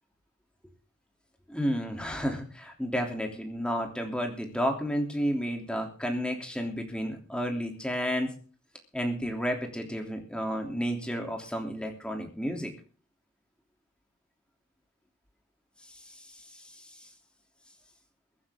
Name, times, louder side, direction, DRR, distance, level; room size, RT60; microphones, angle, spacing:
voice 1, 1.5-8.3 8.9-12.7 16.2-16.3 16.5-16.9, equal, 5° left, 2 dB, 3.2 m, -31 dB
23.5 x 9.6 x 3.8 m, 0.40 s
head